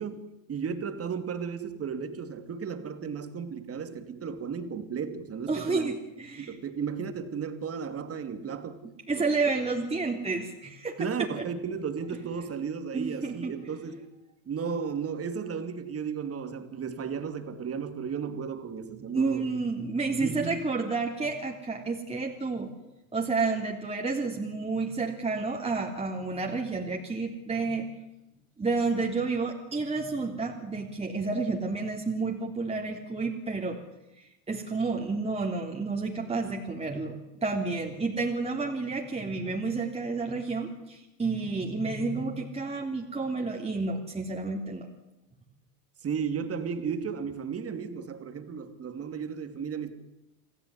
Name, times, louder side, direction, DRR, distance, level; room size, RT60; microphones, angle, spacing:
voice 1, 0.0-5.9 6.4-8.8 9.1-9.3 11.0-14.0 14.5-19.4 20.2-20.7 46.0-49.9, right 6 dB, 35° right, 9 dB, 3.0 m, -34 dB
voice 2, 5.5-6.6 9.1-11.1 12.9-13.5 19.1-22.7 23.1-27.9 28.6-33.8 34.2-44.9, right 3 dB, 15° right, 0 dB, 3.4 m, -30 dB
28.0 x 16.0 x 9.9 m, 0.95 s
supercardioid pair, 105°, 43 cm